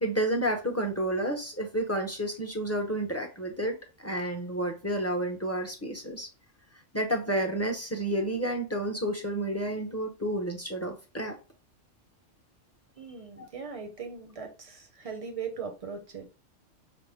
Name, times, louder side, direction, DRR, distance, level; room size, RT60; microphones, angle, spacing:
voice 1, 0.0-6.3 6.9-11.4 13.4-13.5, right 1 dB, 15° left, 3 dB, 0.7 m, -30 dB
voice 2, 13.0-16.3, right 5 dB, 30° right, 5 dB, 0.8 m, -39 dB
5.8 x 2.2 x 3.5 m, 0.32 s
omnidirectional pair, 1.3 m